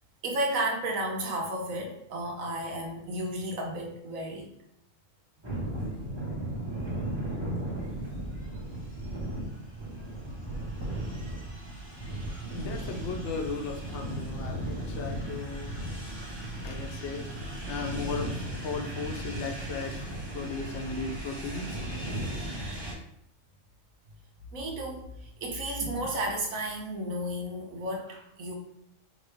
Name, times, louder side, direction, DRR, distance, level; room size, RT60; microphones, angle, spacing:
voice 1, 0.2-4.5 24.5-28.6, right 1 dB, 80° right, 1 dB, 1.3 m, -33 dB
sound 1, 5.4-22.9, right 1 dB, 20° right, 1.2 m, -36 dB
voice 2, 12.5-17.3 17.7-20.0 20.3-21.8, left 4 dB, 65° left, 3 dB, 0.9 m, -37 dB
5.1 x 2.9 x 3.3 m, 0.77 s
omnidirectional pair, 1.4 m